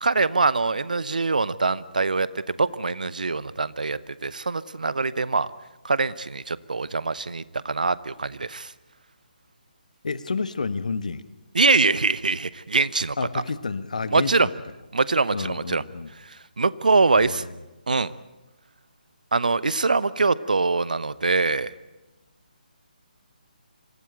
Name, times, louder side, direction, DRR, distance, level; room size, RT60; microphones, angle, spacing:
voice 1, 0.0-5.5 5.8-8.7 11.5-13.2 14.1-14.5 14.9-15.8 16.6-17.5 17.9-18.1 19.3-21.7, right 3 dB, 60° right, 18 dB, 0.9 m, -23 dB
voice 2, 10.0-11.2 13.2-14.5 15.3-16.1 17.2-17.5, left 4 dB, 55° left, 15 dB, 1.2 m, -30 dB
25.0 x 17.0 x 9.1 m, 1.1 s
figure-of-eight pair, 145°, 5 cm